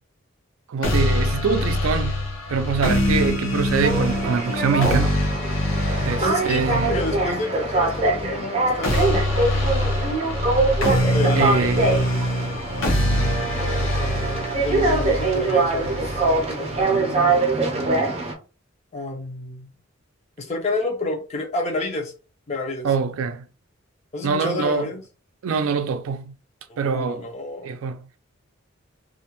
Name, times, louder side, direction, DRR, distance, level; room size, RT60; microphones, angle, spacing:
voice 1, 0.7-2.2 2.5-5.2 6.0-7.0 11.4-11.9 22.8-23.4 24.2-24.9 25.4-26.3 26.8-27.3 27.6-28.0, right 5 dB, 90° right, 0.4 m, -24 dB
sound 1, 0.8-16.8, left 1 dB, 70° left, 0.7 m, -24 dB
sound 2, 3.8-18.3, right 3 dB, 30° right, 0.5 m, -23 dB
voice 2, 6.2-9.2 11.1-12.3 14.6-17.8 18.9-19.7 20.4-22.1 22.5-22.9 24.1-25.0 26.7-27.7, left 2 dB, 35° left, 0.5 m, -30 dB
2.4 x 2.1 x 2.9 m
head